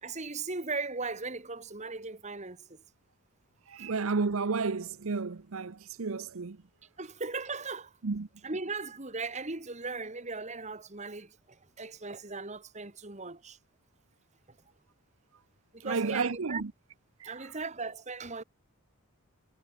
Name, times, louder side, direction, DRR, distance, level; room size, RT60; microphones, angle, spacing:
voice 1, 0.0-2.8 7.0-7.9 8.4-13.6 15.7-16.6 17.2-18.4, right 3 dB, 30° right, 1.9 m, -38 dB
voice 2, 3.7-6.6 8.0-8.3 15.8-16.7 17.2-17.5, right 4 dB, 70° right, 0.7 m, -32 dB
head